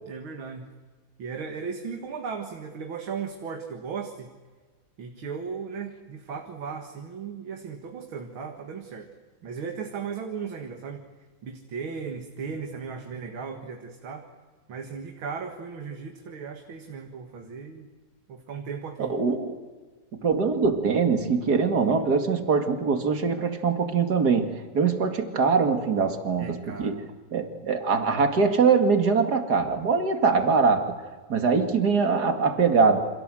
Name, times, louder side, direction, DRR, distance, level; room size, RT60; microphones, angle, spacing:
voice 1, 0.1-0.7 1.2-4.3 5.0-9.1 9.4-11.0 11.4-14.3 14.7-17.9 18.3-19.2 26.4-27.0, right 5 dB, 75° right, 4 dB, 2.7 m, -36 dB
voice 2, 19.0-19.6 20.2-27.0 27.3-30.9 31.3-33.0, right 5 dB, 50° right, 6 dB, 2.7 m, -23 dB
29.0 x 26.5 x 7.7 m, 1.4 s
omnidirectional pair, 2.3 m